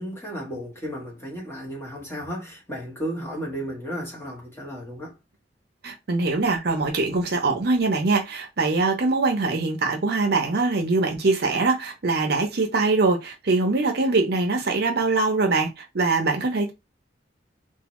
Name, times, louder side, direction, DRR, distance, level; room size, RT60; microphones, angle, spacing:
voice 1, 0.0-5.1, equal, 15° left, 1.0 m, -34 dB
voice 2, 5.8-16.7, right 3 dB, 60° right, 0.6 m, -23 dB
2.6 x 2.1 x 3.0 m
head